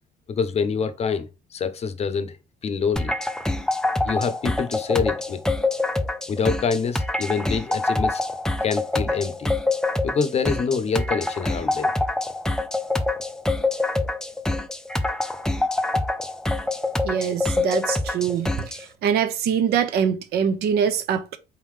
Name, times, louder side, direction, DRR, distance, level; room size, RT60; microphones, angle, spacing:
voice 1, 0.3-2.4 2.6-3.1 4.0-5.4 6.3-8.2 8.6-9.5 10.0-11.9, left 5 dB, 40° left, 0.7 m, -26 dB
sound 1, 3.0-18.8, left 2 dB, 5° left, 0.4 m, -25 dB
voice 2, 17.0-21.4, right 8 dB, 70° right, 0.7 m, -24 dB
4.2 x 3.8 x 3.1 m
cardioid pair, 110°, 17 cm